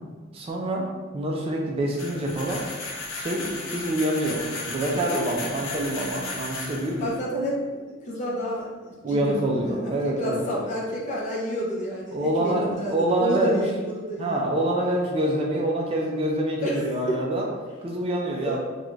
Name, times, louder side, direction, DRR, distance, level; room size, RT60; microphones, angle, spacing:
voice 1, 0.3-2.7 3.2-7.1 9.0-10.4 12.1-13.6 14.2-17.5 17.8-18.6, right 1 dB, 30° right, -1 dB, 0.3 m, -26 dB
sound 1, 2.0-7.2, left 3 dB, 85° left, 0.6 m, -35 dB
voice 2, 7.0-14.5 16.6-17.2 18.4-18.6, equal, 40° left, -4 dB, 0.6 m, -30 dB
2.5 x 2.3 x 3.0 m, 1.4 s
head